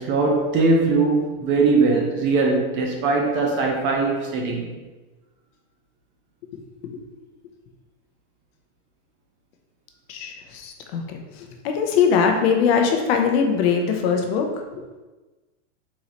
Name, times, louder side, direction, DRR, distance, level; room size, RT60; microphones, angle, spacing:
voice 1, 0.0-4.6, right 3 dB, 35° right, 0 dB, 0.7 m, -20 dB
voice 2, 10.1-11.2 11.6-14.5, left 6 dB, 55° left, 3 dB, 0.8 m, -21 dB
4.2 x 3.8 x 3.0 m, 1.2 s
supercardioid pair, 140°, 36 cm